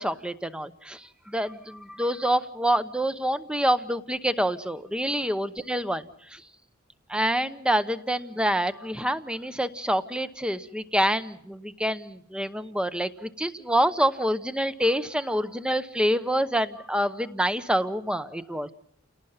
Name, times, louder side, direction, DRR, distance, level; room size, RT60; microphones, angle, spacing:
voice 1, 0.0-6.4 7.1-18.7, equal, 5° right, 12 dB, 0.8 m, -27 dB
30.0 x 18.5 x 5.7 m, 0.66 s
head